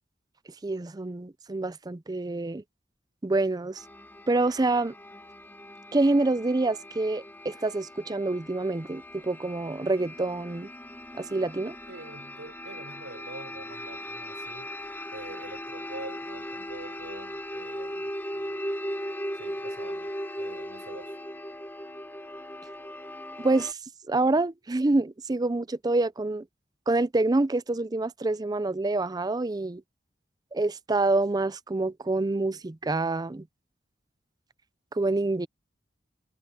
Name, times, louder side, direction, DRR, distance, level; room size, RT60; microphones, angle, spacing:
voice 1, 0.6-2.6 3.2-3.8 4.3-4.9 5.9-10.7 11.2-11.8 23.4-23.8 24.1-26.4 26.9-29.8 30.5-33.5 34.9-35.5, right 2 dB, 20° right, 0.5 m, -26 dB
sound 1, 3.8-23.7, equal, 10° left, 2.0 m, -39 dB
voice 2, 11.9-14.7 15.1-18.6 19.3-21.2, right 2 dB, 90° right, 4.9 m, -46 dB
head